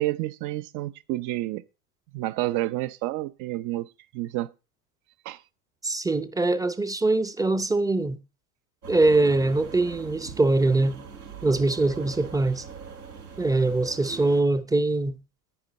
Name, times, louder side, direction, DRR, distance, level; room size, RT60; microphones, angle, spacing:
voice 1, 0.0-1.6 2.1-3.9 4.1-4.5 5.2-5.4, right 16 dB, 45° right, 0.8 m, -29 dB
voice 2, 5.8-8.2 8.9-11.0 11.4-12.6 13.4-15.2, right 2 dB, 10° right, 0.8 m, -23 dB
sound 1, 8.8-14.4, right 6 dB, 85° right, 4.3 m, -41 dB
9.8 x 9.7 x 4.2 m
hypercardioid pair, 85°, 45 cm